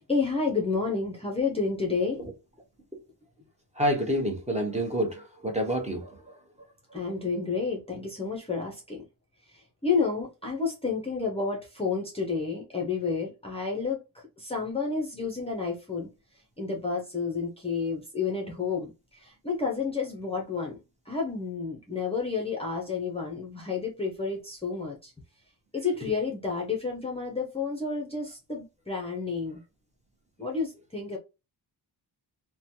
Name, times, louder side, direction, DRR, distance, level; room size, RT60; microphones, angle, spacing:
voice 1, 0.0-2.2 6.9-9.0 9.5-14.0 14.4-20.8 21.1-25.1 25.7-29.6 30.4-31.2, left 4 dB, 15° left, 0.7 m, -30 dB
voice 2, 3.8-6.4, equal, 15° right, 0.9 m, -28 dB
3.1 x 2.2 x 2.6 m
wide cardioid pair, 130°, 44 cm